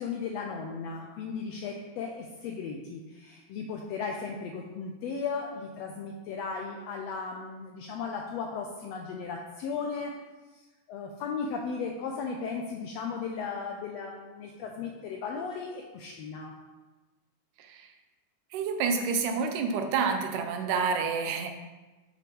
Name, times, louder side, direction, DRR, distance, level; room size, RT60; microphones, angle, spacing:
voice 1, 0.0-10.2 10.5-16.5, left 5 dB, 90° left, 1 dB, 1.5 m, -36 dB
voice 2, 18.5-21.5, right 5 dB, 90° right, 5 dB, 2.3 m, -28 dB
7.0 x 6.8 x 3.0 m, 1.2 s
omnidirectional pair, 3.5 m